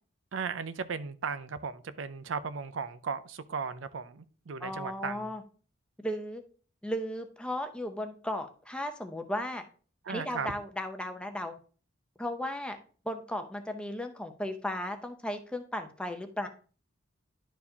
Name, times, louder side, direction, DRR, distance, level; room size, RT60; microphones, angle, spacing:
voice 1, 0.3-5.3 10.0-10.5, right 5 dB, 65° right, 13 dB, 0.5 m, -36 dB
voice 2, 4.6-5.4 6.0-6.4 6.8-9.6 10.1-11.6 12.2-12.8 13.0-16.5, left 1 dB, 5° left, 5 dB, 0.6 m, -35 dB
11.0 x 4.6 x 2.8 m, 0.40 s
head